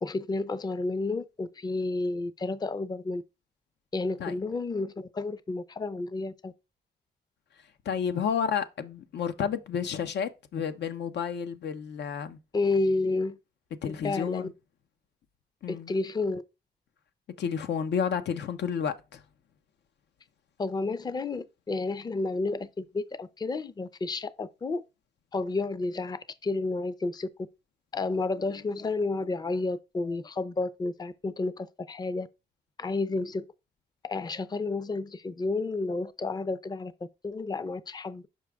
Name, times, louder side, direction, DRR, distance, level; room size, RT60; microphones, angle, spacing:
voice 1, 0.0-3.2 3.9-6.5 12.5-13.4 13.9-14.5 15.7-16.4 20.6-24.8 25.3-27.3 27.9-32.3 32.8-33.4 34.0-36.9 37.2-38.3, left 3 dB, 25° left, 0.4 m, -31 dB
voice 2, 7.9-12.4 13.8-14.5 15.6-15.9 17.4-19.2, left 7 dB, 85° left, 0.7 m, -31 dB
6.2 x 4.9 x 3.4 m
cardioid pair, 90°, 17 cm